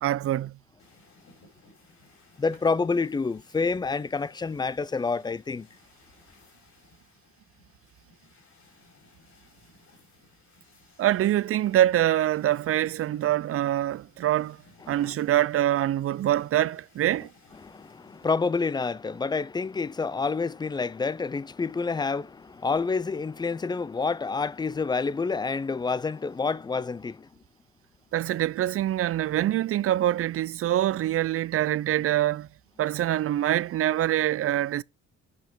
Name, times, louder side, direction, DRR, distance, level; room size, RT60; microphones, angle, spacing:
voice 1, 0.0-0.6 11.0-14.6 14.9-17.3 28.1-32.5 32.8-34.8, right 13 dB, 50° right, 0.4 m, -25 dB
sound 1, 0.8-18.3, left 3 dB, 65° left, 5.5 m, -59 dB
voice 2, 2.4-5.7 14.9-15.0 17.6-27.3, left 4 dB, 15° left, 0.4 m, -28 dB
9.2 x 5.6 x 4.6 m
cardioid pair, 90°, 30 cm